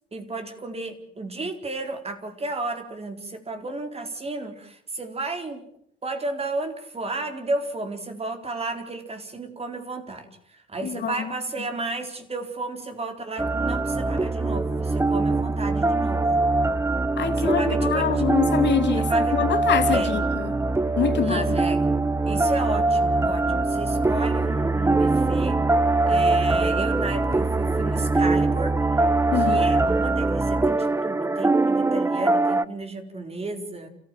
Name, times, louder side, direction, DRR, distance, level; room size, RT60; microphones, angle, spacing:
voice 1, 0.1-5.7 6.0-16.3 17.4-18.2 18.9-19.4 19.9-20.2 21.2-21.8 22.3-25.6 26.1-28.9 29.4-33.9, right 2 dB, 30° right, 4.3 m, -33 dB
voice 2, 10.8-11.3 17.2-20.5 21.0-21.5 29.3-29.6, left 8 dB, 65° left, 2.9 m, -25 dB
sound 1, 13.4-32.7, right 2 dB, 15° right, 0.9 m, -22 dB
29.5 x 15.0 x 7.5 m
cardioid pair, 90°, 20 cm